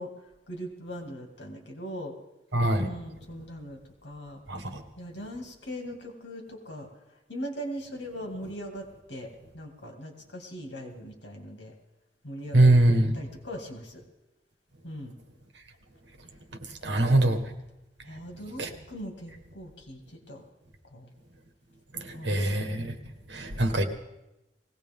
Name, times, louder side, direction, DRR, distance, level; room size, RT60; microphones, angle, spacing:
voice 1, 0.0-2.2 2.8-4.4 5.0-7.0 7.3-11.7 12.2-14.0 14.8-15.1 16.8-17.4 18.0-20.4 20.8-21.1 22.1-22.5, equal, 85° left, 2 dB, 2.3 m, -40 dB
voice 2, 2.5-2.9 4.5-4.8 12.5-13.1 16.8-17.4 18.6-18.7 21.9-23.0 23.3-23.8, right 1 dB, 85° right, 6 dB, 1.5 m, -23 dB
20.0 x 17.0 x 3.6 m, 0.94 s
head